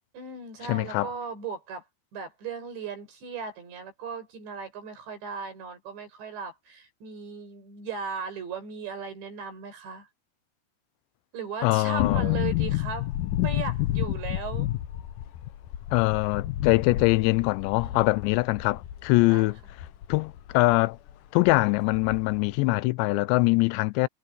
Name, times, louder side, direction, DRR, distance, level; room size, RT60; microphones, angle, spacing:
voice 1, 0.1-1.8 2.1-10.1 11.3-13.1 13.4-14.7 19.2-19.5, right 5 dB, 80° right, 8.2 m, -37 dB
voice 2, 0.7-1.1 11.6-12.3 15.9-19.6 20.1-21.0 21.3-24.1, left 22 dB, 90° left, 2.9 m, -23 dB
sound 1, 12.0-20.8 21.1-21.2 21.5-22.5 22.7-22.8, left 14 dB, 70° left, 2.1 m, -30 dB
omnidirectional pair, 5.0 m